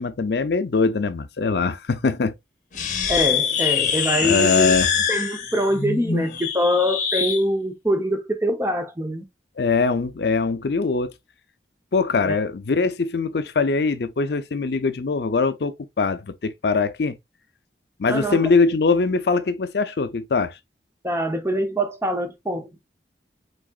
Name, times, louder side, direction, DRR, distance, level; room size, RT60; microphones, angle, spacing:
voice 1, 0.0-2.3 4.1-4.9 9.6-11.1 11.9-17.2 18.0-20.6, left 4 dB, 65° left, 0.5 m, -22 dB
sound 1, 2.7-7.4, left 7 dB, 45° left, 0.9 m, -24 dB
voice 2, 3.1-4.7 5.1-9.2 12.2-12.4 18.1-18.4 21.0-22.8, equal, 15° right, 0.7 m, -24 dB
4.9 x 4.0 x 2.4 m
head